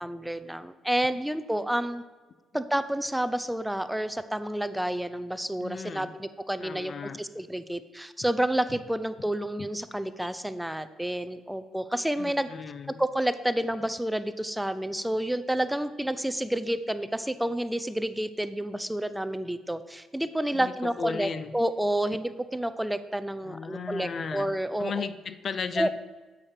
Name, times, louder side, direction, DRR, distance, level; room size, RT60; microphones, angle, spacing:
voice 1, 0.0-2.0 2.5-12.5 13.0-25.1 25.8-25.9, right 1 dB, 5° right, 12 dB, 0.5 m, -29 dB
voice 2, 5.6-6.1 6.6-7.2 8.7-8.8 12.2-13.0 20.5-21.5 23.4-24.5 24.8-25.9, left 6 dB, 50° left, 13 dB, 0.5 m, -35 dB
8.7 x 7.4 x 5.0 m, 1.3 s
cardioid pair, 90°, 0 cm